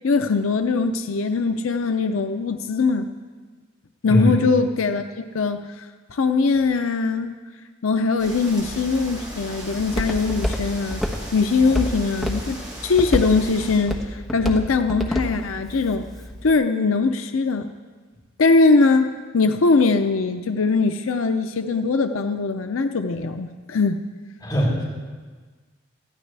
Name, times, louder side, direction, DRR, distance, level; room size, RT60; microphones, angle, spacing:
voice 1, 0.0-3.1 4.0-5.8 6.1-7.3 7.8-11.0 11.3-16.0 16.4-17.7 18.4-24.0, left 4 dB, 85° left, 7 dB, 0.6 m, -21 dB
sound 1, 8.2-13.8, right 1 dB, 20° right, 5.6 m, -38 dB
Walk footsteps, 8.6-16.5, equal, ahead, 1.2 m, -30 dB
voice 2, 24.4-24.8, equal, 20° left, -7 dB, 6.1 m, -20 dB
21.5 x 14.5 x 3.4 m, 1.4 s
head